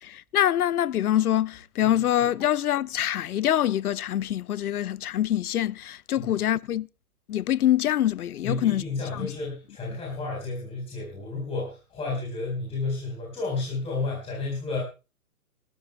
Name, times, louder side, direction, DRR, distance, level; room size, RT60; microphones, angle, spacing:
voice 1, 0.0-6.9 7.3-8.8 9.1-9.3, left 12 dB, 85° left, 0.6 m, -25 dB
voice 2, 8.4-14.8, left 3 dB, 15° left, 4.3 m, -31 dB
27.0 x 12.5 x 2.2 m
hypercardioid pair, 145°, 43 cm